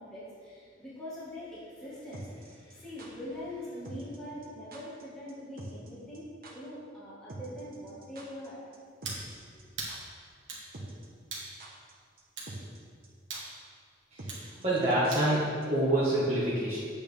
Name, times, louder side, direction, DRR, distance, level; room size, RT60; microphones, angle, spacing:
voice 1, 0.0-8.6, left 1 dB, 5° left, -11 dB, 1.8 m, -43 dB
sound 1, 2.1-3.1 3.9-4.2 4.4-4.5 4.7-5.0 5.3-5.4 5.6-5.9 6.1-6.2 6.4-6.5 7.3-8.5 8.7-8.8 9.0-9.6 9.9-10.0 10.7-11.1 11.3-11.9 12.2-12.3 12.5-12.8 13.0-13.1 13.3-13.4 14.2-15.4 15.6-15.7, right 2 dB, 50° right, 1.2 m, -44 dB
sound 2, 9.0-9.3 9.8-10.0 10.5-10.7 11.3-11.5 12.4-12.5 13.3-13.5 14.3-14.5 15.1-15.3, right 3 dB, 65° right, 1.8 m, -39 dB
voice 2, 14.1-16.8, right 1 dB, 35° right, -10 dB, 1.6 m, -27 dB
8.6 x 8.4 x 3.5 m, 2.2 s
head